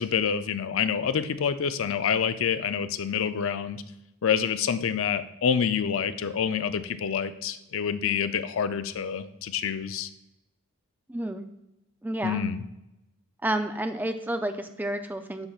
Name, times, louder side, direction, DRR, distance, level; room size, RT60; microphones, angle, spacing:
voice 1, 0.0-3.8 4.2-10.1 12.2-12.6, left 7 dB, 60° left, 11 dB, 0.4 m, -27 dB
voice 2, 11.1-11.5 12.0-12.5 13.4-15.5, right 1 dB, 10° right, 7 dB, 0.4 m, -30 dB
9.7 x 5.8 x 2.4 m, 0.92 s
head